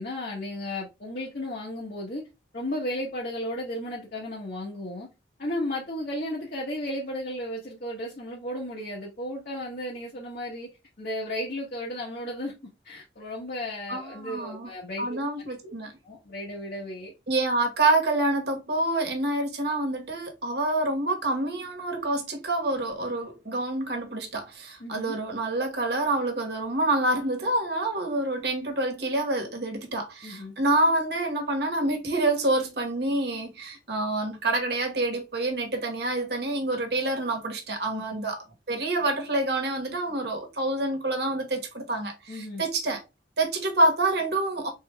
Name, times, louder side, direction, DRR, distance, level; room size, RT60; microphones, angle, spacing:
voice 1, 0.0-2.2 2.5-5.1 5.4-10.7 11.0-12.5 12.8-15.2 15.6-15.7 16.0-17.1 24.8-25.1 30.2-30.5 37.9-38.2 42.3-42.6, left 1 dB, 55° left, 1.1 m, -34 dB
voice 2, 13.9-14.7 15.0-15.9 17.3-43.0 43.4-44.7, right 2 dB, 65° right, 1.1 m, -27 dB
4.2 x 3.7 x 2.2 m
head